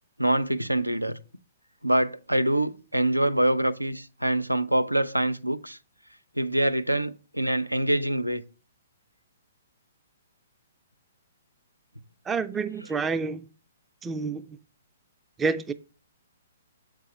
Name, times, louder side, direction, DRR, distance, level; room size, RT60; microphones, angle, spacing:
voice 1, 0.2-1.2 1.8-5.8 6.4-8.4 12.8-13.0, right 1 dB, 85° right, 0.5 m, -25 dB
voice 2, 12.3-13.5 14.0-14.6 15.4-15.7, right 4 dB, 10° right, 0.3 m, -28 dB
7.6 x 4.7 x 4.3 m
figure-of-eight pair, 120°, 0 cm